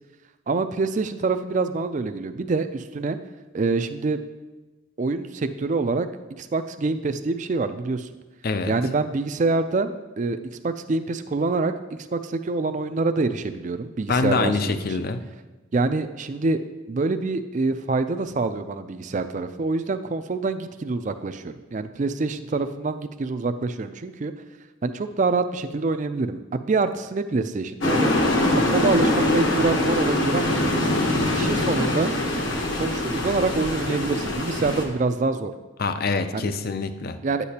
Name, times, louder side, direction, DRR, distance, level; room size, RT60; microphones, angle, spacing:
voice 1, 0.5-3.2 3.5-4.2 5.0-6.1 6.4-8.1 8.7-10.4 10.6-11.7 12.1-15.1 15.7-16.6 16.9-24.3 24.8-28.1 28.7-30.6 31.3-32.1 32.8-35.5 36.3-36.5 37.2-37.4, right 3 dB, 35° right, 10 dB, 0.4 m, -26 dB
voice 2, 14.1-15.2 35.8-37.2, left 4 dB, 45° left, 10 dB, 0.4 m, -25 dB
sound 1, 27.8-34.8, left 1 dB, 65° left, 1.2 m, -23 dB
10.5 x 8.2 x 2.8 m, 1.2 s
head